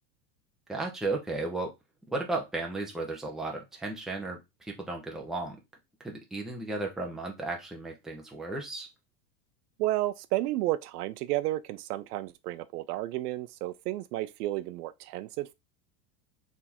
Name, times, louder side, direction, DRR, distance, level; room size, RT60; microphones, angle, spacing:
voice 1, 0.7-1.7 2.1-5.6 6.0-8.9, right 2 dB, ahead, 0.6 m, -34 dB
voice 2, 9.8-15.5, right 16 dB, 75° right, 0.6 m, -32 dB
4.2 x 3.6 x 2.9 m
supercardioid pair, 145°, 48 cm